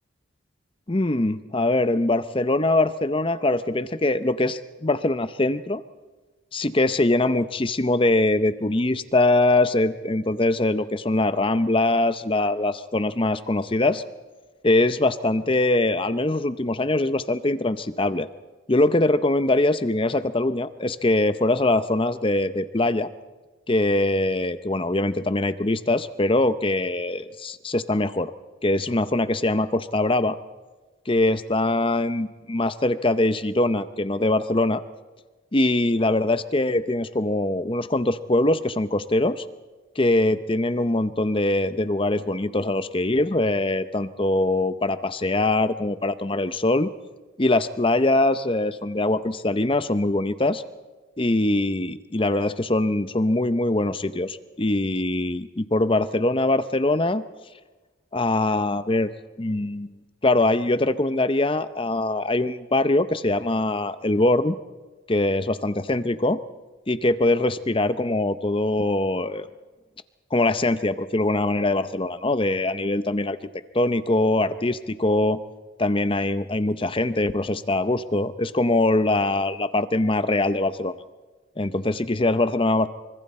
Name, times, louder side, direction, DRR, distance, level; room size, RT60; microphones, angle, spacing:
voice 1, 0.9-5.8 6.5-14.0 14.6-18.3 18.7-23.1 23.7-28.3 28.6-30.4 31.1-34.8 35.5-39.4 40.0-46.9 47.4-50.6 51.2-57.2 58.1-59.1 59.4-59.9 60.2-64.5 65.1-66.4 66.9-69.5 70.3-73.4 73.7-75.4 75.8-80.9 81.6-82.9, left 2 dB, 25° left, 13 dB, 0.7 m, -22 dB
25.0 x 25.0 x 4.3 m, 1.3 s
head